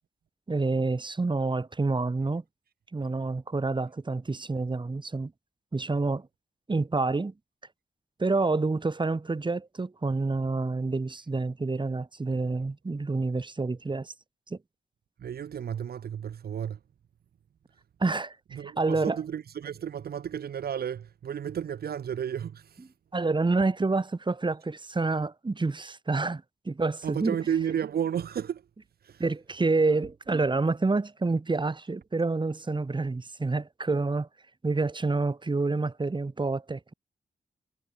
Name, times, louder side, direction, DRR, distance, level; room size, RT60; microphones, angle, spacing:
voice 1, 0.5-2.4 2.9-5.3 5.7-6.3 6.7-7.3 8.2-14.1 14.5-14.6 18.0-19.2 23.1-27.4 29.2-34.3 34.6-36.9, right 3 dB, 30° right, 2.1 m, -28 dB
voice 2, 15.2-16.8 18.5-22.8 27.0-28.6 29.0-29.2, right 8 dB, 70° right, 1.0 m, -32 dB
cardioid pair, 65°, 17 cm